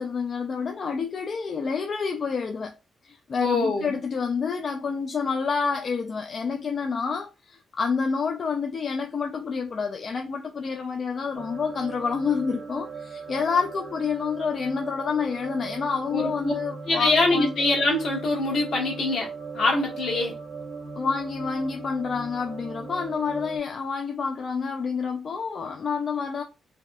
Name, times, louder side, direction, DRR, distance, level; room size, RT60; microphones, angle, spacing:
voice 1, 0.0-2.8 3.0-17.5 21.0-26.4, left 5 dB, 50° left, 0.3 m, -28 dB
voice 2, 3.4-3.9 16.1-16.5 16.9-20.4, left 2 dB, 70° left, 1.2 m, -24 dB
sound 1, 11.4-23.6, right 4 dB, 85° right, 0.8 m, -39 dB
3.3 x 2.1 x 2.2 m
cardioid pair, 110°, 0 cm